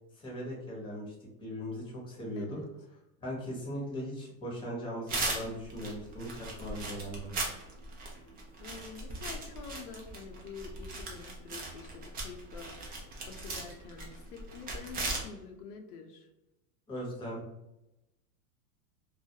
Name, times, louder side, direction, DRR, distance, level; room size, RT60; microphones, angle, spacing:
voice 1, 0.1-1.1 1.4-2.6 3.2-7.4 16.9-17.4, equal, 10° left, -3 dB, 0.8 m, -39 dB
voice 2, 2.4-2.7 8.1-8.2 8.6-16.3, left 5 dB, 75° left, 2 dB, 0.6 m, -47 dB
sound 1, 5.1-15.2, right 2 dB, 20° right, 0.4 m, -39 dB
2.3 x 2.0 x 2.8 m, 0.92 s
supercardioid pair, 125°, 46 cm